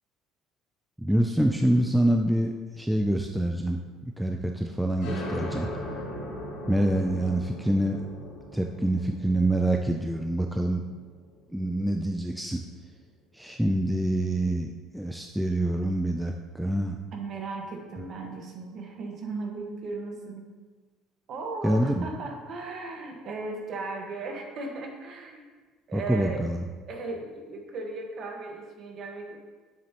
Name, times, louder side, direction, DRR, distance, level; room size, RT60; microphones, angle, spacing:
voice 1, 1.0-5.7 6.7-8.1 8.5-10.8 11.5-12.6 13.3-17.0 21.6-22.1 25.9-26.6, right 1 dB, ahead, 2 dB, 0.3 m, -26 dB
sound 1, 5.0-12.3, left 1 dB, 60° left, 2.2 m, -39 dB
voice 2, 17.1-20.5 21.3-25.5 25.9-26.5 26.9-29.4, right 3 dB, 40° right, 1 dB, 1.3 m, -36 dB
9.0 x 7.3 x 2.9 m, 1.4 s
cardioid pair, 165°, 0 cm